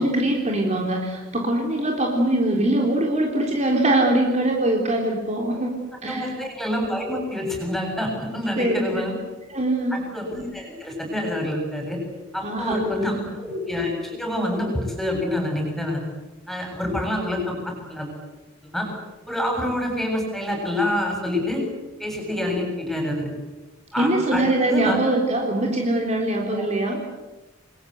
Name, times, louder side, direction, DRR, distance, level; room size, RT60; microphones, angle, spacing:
voice 1, 0.0-6.3 8.6-9.0 9.5-10.0 12.4-13.3 24.0-27.0, right 1 dB, 35° right, 0 dB, 3.7 m, -22 dB
voice 2, 6.0-9.2 9.9-12.0 12.3-16.0 16.5-18.1 18.6-18.9 19.3-21.6 22.0-23.3 23.9-25.0 26.5-26.6, left 1 dB, ahead, 2 dB, 7.7 m, -27 dB
29.0 x 22.5 x 8.2 m, 1.1 s
head